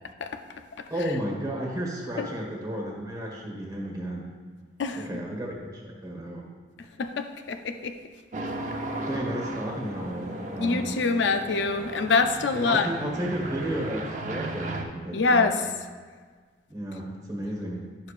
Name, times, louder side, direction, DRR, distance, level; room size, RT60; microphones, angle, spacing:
voice 1, 0.9-4.3 4.9-6.5 9.1-11.0 12.5-15.6 16.7-17.9, right 1 dB, 20° right, -1 dB, 1.3 m, -33 dB
voice 2, 4.8-5.2 7.0-8.0 10.6-12.9 15.1-15.7, left 4 dB, 75° left, 7 dB, 0.5 m, -25 dB
sound 1, 8.3-14.8, right 1 dB, 40° right, 0.7 m, -36 dB
10.5 x 6.9 x 2.5 m, 1.5 s
head